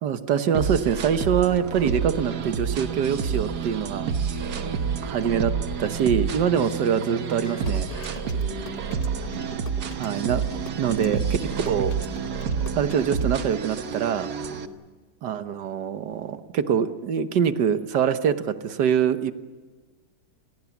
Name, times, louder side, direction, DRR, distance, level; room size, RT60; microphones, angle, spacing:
voice 1, 0.0-4.1 5.0-5.5 5.8-7.9 10.0-10.4 10.8-11.2 11.7-11.9 12.8-14.3 15.2-19.3, right 8 dB, 90° right, 10 dB, 1.7 m, -24 dB
sound 1, 0.5-14.7, right 6 dB, 70° right, 1.7 m, -29 dB
voice 2, 4.4-5.0 8.2-8.8 11.0-11.2 14.5-14.7, equal, 75° left, 0 dB, 8.4 m, -42 dB
sound 2, 7.4-13.0, left 4 dB, 30° left, 0.9 m, -42 dB
29.0 x 21.5 x 7.2 m, 1.4 s
omnidirectional pair, 1.8 m